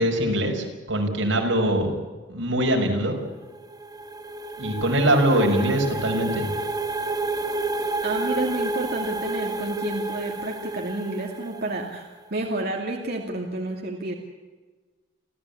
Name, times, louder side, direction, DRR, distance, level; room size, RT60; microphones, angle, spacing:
voice 1, 0.0-1.9 2.3-3.2 4.6-6.5, right 1 dB, 85° right, 2 dB, 5.9 m, -22 dB
sound 1, 3.4-12.0, right 2 dB, 20° right, 1.6 m, -30 dB
voice 2, 8.0-14.1, right 2 dB, 55° right, 1 dB, 2.6 m, -30 dB
29.5 x 15.0 x 8.5 m, 1.3 s
head